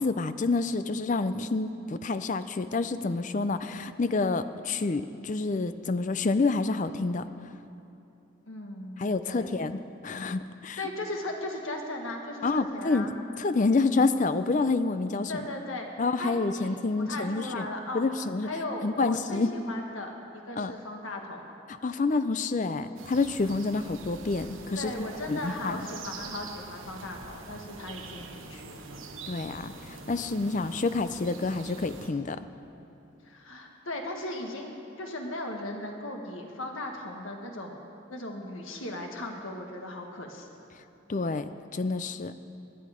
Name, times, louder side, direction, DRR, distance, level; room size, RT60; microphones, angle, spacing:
voice 1, 0.0-7.3 9.0-10.8 12.4-15.4 16.0-17.7 17.9-18.5 18.8-19.5 20.6-20.7 21.8-25.8 29.3-32.5 41.1-42.3, left 3 dB, 40° left, 12 dB, 0.4 m, -28 dB
voice 2, 8.5-9.5 10.8-13.1 15.3-15.9 16.2-18.1 18.4-21.5 24.7-29.0 33.2-37.8 38.1-40.5, left 1 dB, 80° left, 2 dB, 1.6 m, -37 dB
sound 1, 23.0-32.1, right 4 dB, 80° right, 1.1 m, -44 dB
18.0 x 11.0 x 5.0 m, 3.0 s
head